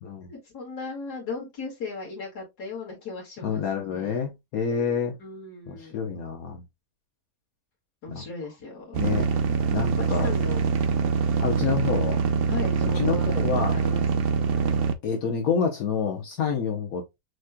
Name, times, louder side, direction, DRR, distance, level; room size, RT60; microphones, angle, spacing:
voice 1, 0.3-4.2 5.2-6.0 8.0-9.0 10.1-10.8 12.5-14.3, left 3 dB, 85° left, 2.5 m, -37 dB
voice 2, 3.4-5.2 5.7-6.6 8.1-8.2 9.0-9.3 9.7-10.3 11.4-12.2 12.9-13.7 15.0-17.0, left 6 dB, 70° left, 1.3 m, -28 dB
sound 1, 8.9-14.9, right 6 dB, 65° right, 0.6 m, -24 dB
6.5 x 3.1 x 2.2 m
omnidirectional pair, 1.7 m